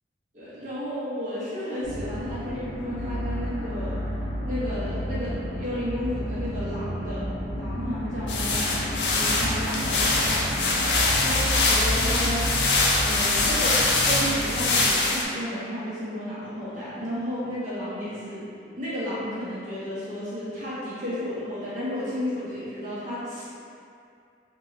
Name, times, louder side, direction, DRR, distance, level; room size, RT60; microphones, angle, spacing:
voice 1, 0.3-4.0 4.4-10.8 11.2-12.6 13.0-13.8 14.0-23.5, equal, 45° right, -10 dB, 1.1 m, -33 dB
sound 1, 1.8-14.9, equal, 90° right, 1.2 m, -31 dB
sound 2, 8.3-15.2, left 3 dB, 70° left, 0.5 m, -23 dB
3.5 x 3.1 x 2.7 m, 2.5 s
head